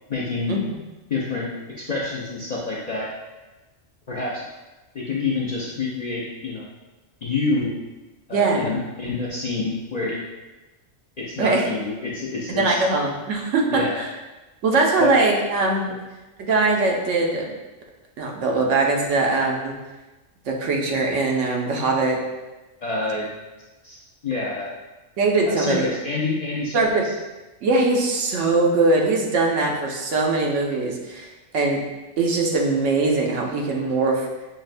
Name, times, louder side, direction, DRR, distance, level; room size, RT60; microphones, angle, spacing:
voice 1, 0.1-0.5 1.1-1.5 1.8-3.1 4.1-4.4 4.9-6.7 7.2-7.7 8.3-10.2 11.2-12.8 13.7-14.0 15.0-15.1 22.8-23.3 23.8-24.7 25.5-27.1, left 3 dB, 55° left, -6 dB, 0.4 m, -27 dB
voice 2, 8.3-8.6 11.4-11.7 12.6-14.1 14.6-15.9 16.4-17.5 18.2-19.7 20.5-22.2 25.2-25.9 26.7-27.0 27.6-31.3 31.5-31.8 32.2-34.3, right 3 dB, 75° right, 0 dB, 1.0 m, -21 dB
6.2 x 2.1 x 2.5 m, 1.1 s
omnidirectional pair, 1.3 m